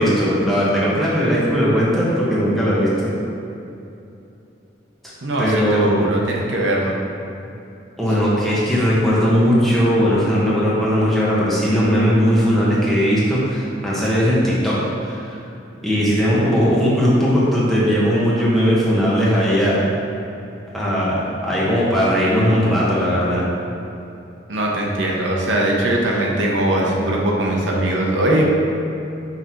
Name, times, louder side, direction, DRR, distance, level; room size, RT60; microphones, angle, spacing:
voice 1, 0.0-3.1 5.4-6.1 8.0-14.7 15.1-15.4 15.8-19.8 20.7-21.2 21.4-23.4, equal, ahead, -8 dB, 1.2 m, -18 dB
voice 2, 5.2-6.9 24.5-28.4, right 1 dB, 80° right, -2 dB, 0.9 m, -20 dB
5.9 x 3.9 x 4.4 m, 2.8 s
head